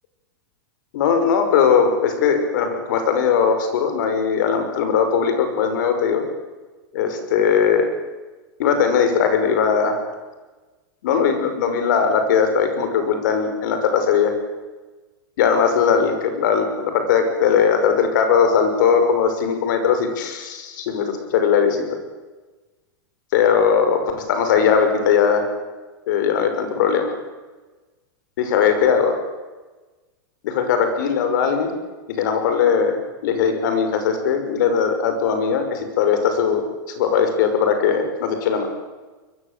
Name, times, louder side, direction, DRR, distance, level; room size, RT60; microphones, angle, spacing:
voice 1, 0.9-6.2 6.9-7.9 8.6-10.0 11.0-14.3 15.4-21.8 23.3-24.0 24.3-25.5 26.1-27.1 28.4-29.2 30.4-31.8 32.1-36.7 36.9-38.7, left 7 dB, 60° left, 7 dB, 6.0 m, -19 dB
24.5 x 22.0 x 8.5 m, 1.2 s
supercardioid pair, 165°, 11 cm